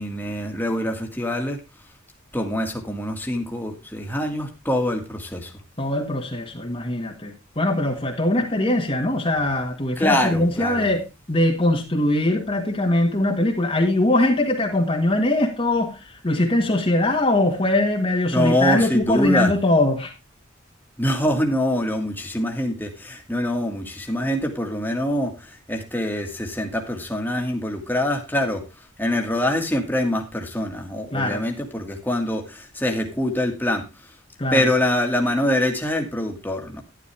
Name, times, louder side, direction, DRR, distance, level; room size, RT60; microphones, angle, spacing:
voice 1, 0.0-1.6 2.3-5.5 10.0-10.9 18.3-19.5 21.0-28.6 29.0-33.9 34.5-36.8, left 1 dB, 10° left, 1.9 m, -24 dB
voice 2, 5.8-20.1 31.1-31.4 34.4-34.7, left 1 dB, 25° left, 1.6 m, -21 dB
11.5 x 11.5 x 3.4 m
head